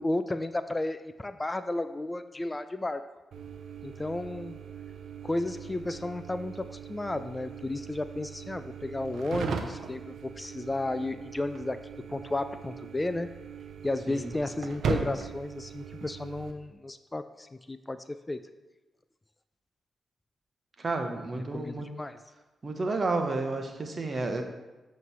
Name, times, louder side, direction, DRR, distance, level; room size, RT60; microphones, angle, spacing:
voice 1, 0.0-3.0 3.8-4.6 5.2-11.8 12.1-13.3 13.8-18.4 21.5-22.2, left 2 dB, 20° left, 11 dB, 0.3 m, -33 dB
fridge open and close with hum, 3.3-16.5, right 5 dB, 75° right, 0.6 m, -39 dB
voice 2, 20.8-21.9 22.6-24.4, right 3 dB, 45° right, 5 dB, 1.0 m, -31 dB
7.9 x 3.2 x 5.5 m, 1.1 s
supercardioid pair, 55°, 0 cm